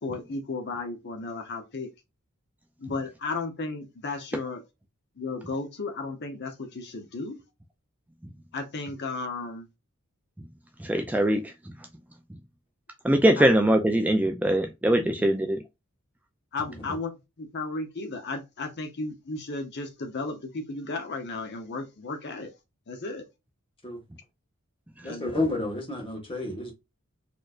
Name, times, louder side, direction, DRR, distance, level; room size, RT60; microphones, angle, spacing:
voice 1, 0.0-1.9 2.8-4.6 5.2-7.4 8.5-9.7 13.4-13.5 15.0-15.3 16.5-17.1 17.4-22.5 22.9-23.2 25.1-25.3, left 3 dB, 50° left, 0.8 m, -34 dB
voice 2, 10.8-11.5 13.0-15.6 25.0-25.1, right 1 dB, 5° right, 0.3 m, -22 dB
voice 3, 25.0-26.7, left 2 dB, 25° left, 1.4 m, -31 dB
4.3 x 3.1 x 2.4 m
head